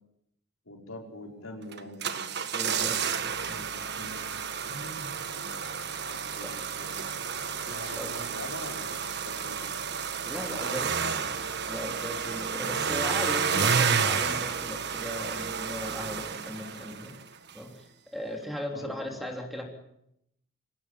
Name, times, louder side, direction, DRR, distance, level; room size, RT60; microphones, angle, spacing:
voice 1, 0.7-2.4 3.5-4.3 4.6-7.3 7.7-9.6 10.4-11.5 18.7-19.2, left 1 dB, 80° left, 1 dB, 5.4 m, -44 dB
sound 1, 1.7-17.2 17.5-17.6, right 6 dB, 55° right, 1.5 m, -31 dB
voice 2, 2.5-3.3 6.4-6.5 7.9-8.1 10.2-10.9 11.7-17.1 17.5-19.6, equal, ahead, 2 dB, 3.3 m, -38 dB
25.5 x 17.5 x 8.7 m, 0.78 s
head